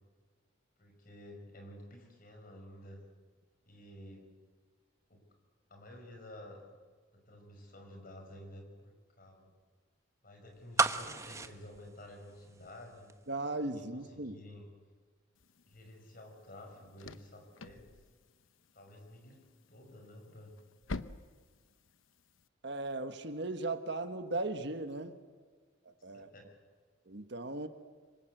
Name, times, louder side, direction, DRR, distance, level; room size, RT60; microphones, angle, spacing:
voice 1, 0.8-3.0 3.7-4.3 5.1-5.3 5.7-6.7 7.3-9.5 10.2-13.2 13.7-14.7 15.7-17.9 18.7-20.6 26.1-26.5, left 1 dB, 45° left, 3 dB, 6.2 m, -52 dB
sound 1, 10.8-12.8 13.1-13.2, right 3 dB, 15° right, 0.9 m, -32 dB
voice 2, 13.3-14.4 22.6-25.2 25.8-26.3 27.1-27.7, right 2 dB, 60° right, 9 dB, 1.5 m, -37 dB
sound 2, 15.3-22.5, left 3 dB, 85° left, 0.9 m, -49 dB
26.0 x 24.0 x 8.0 m, 1.5 s
head